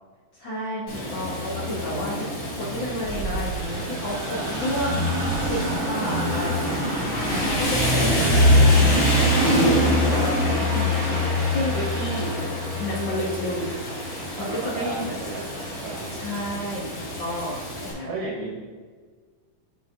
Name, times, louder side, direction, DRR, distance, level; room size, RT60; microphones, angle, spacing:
voice 1, 0.3-6.8 7.1-9.5 9.8-13.8 14.4-15.1 16.1-18.2, equal, 70° left, -8 dB, 1.1 m, -31 dB
Rain, 0.9-17.9, left 1 dB, 40° left, 1.8 m, -24 dB
sound 1, 2.9-12.6, right 5 dB, 90° right, 2.3 m, -36 dB
voice 2, 14.4-16.1 18.1-18.5, right 3 dB, 70° right, -2 dB, 1.8 m, -34 dB
11.0 x 4.0 x 2.4 m, 1.5 s
omnidirectional pair, 3.9 m